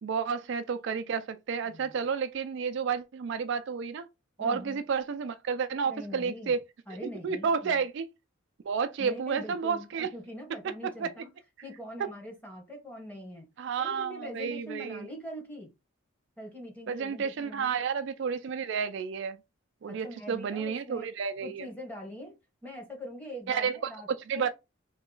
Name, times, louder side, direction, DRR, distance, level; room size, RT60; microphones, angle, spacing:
voice 1, 0.0-4.1 4.4-6.6 7.2-8.1 8.6-10.1 10.8-11.1 13.6-15.1 16.9-19.4 19.8-21.7 23.5-23.8 24.3-24.5, right 6 dB, 55° right, 0.3 m, -31 dB
voice 2, 1.6-2.0 4.4-4.8 5.8-6.5 6.9-7.8 9.0-11.3 11.6-13.5 13.8-15.7 16.4-17.8 19.9-21.1 21.4-22.4 22.6-24.1 24.3-24.5, equal, 10° left, 1.1 m, -43 dB
3.1 x 2.8 x 3.8 m
head